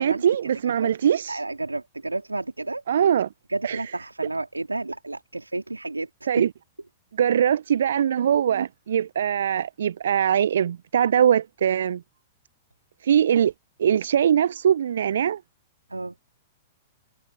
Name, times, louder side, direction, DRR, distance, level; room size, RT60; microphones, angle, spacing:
voice 1, 0.0-1.4 2.9-3.3 3.6-3.8 6.3-6.5 7.2-12.0 13.0-13.5 13.8-15.4, right 9 dB, 65° right, 0.9 m, -22 dB
voice 2, 1.3-3.0 3.5-6.4 15.9-16.1, right 2 dB, 85° right, 3.5 m, -31 dB
figure-of-eight pair, 105°, 0 cm